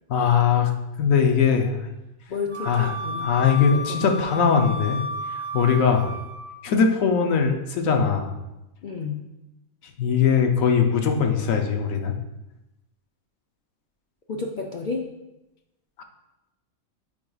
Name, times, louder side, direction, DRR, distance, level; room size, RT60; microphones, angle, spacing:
voice 1, 0.1-0.7 1.0-1.9 2.6-2.9 3.2-5.0 5.3-6.1 6.6-8.3 10.0-12.1 16.0-16.1, left 6 dB, 75° left, 3 dB, 1.1 m, -21 dB
voice 2, 2.3-4.2 8.8-9.2 14.3-15.0, left 4 dB, 60° left, 0 dB, 0.5 m, -32 dB
Wind instrument woodwind instrument, 2.5-6.5, equal, 20° left, 2.1 m, -32 dB
8.5 x 4.7 x 2.3 m, 0.96 s
omnidirectional pair, 1.4 m